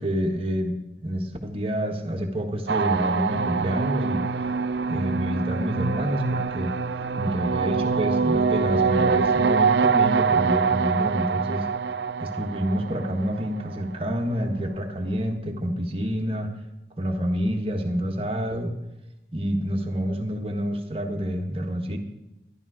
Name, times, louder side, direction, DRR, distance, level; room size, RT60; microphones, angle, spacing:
voice 1, 0.0-4.2 4.9-6.7 7.2-11.7 12.2-16.5 17.0-18.7 19.3-22.0, equal, 30° right, 3 dB, 1.5 m, -28 dB
sound 1, 2.7-13.8, right 5 dB, 75° right, 0.6 m, -24 dB
14.5 x 11.5 x 4.9 m, 0.94 s
head